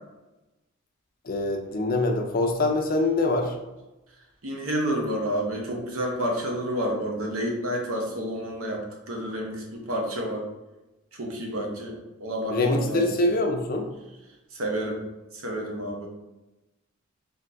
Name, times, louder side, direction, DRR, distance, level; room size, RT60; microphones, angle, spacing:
voice 1, 1.2-3.6 12.5-13.9, left 2 dB, 40° left, 4 dB, 0.5 m, -24 dB
voice 2, 4.4-10.5 11.1-13.0 14.5-15.0 15.3-16.1, equal, 80° right, 0 dB, 0.9 m, -30 dB
3.8 x 2.7 x 3.4 m, 1.0 s
head